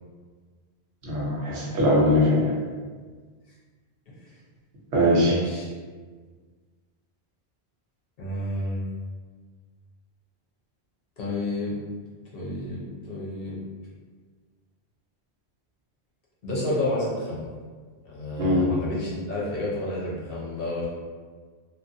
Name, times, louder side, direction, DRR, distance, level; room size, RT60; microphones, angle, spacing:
voice 1, 1.0-2.5 4.9-5.3 18.4-18.7, left 1 dB, 80° right, -4 dB, 1.1 m, -21 dB
voice 2, 5.2-5.7 8.2-8.8 11.2-11.8 12.3-13.6 16.4-17.5 18.0-20.9, left 1 dB, 60° left, -6 dB, 1.0 m, -30 dB
3.0 x 2.4 x 2.6 m, 1.5 s
omnidirectional pair, 1.1 m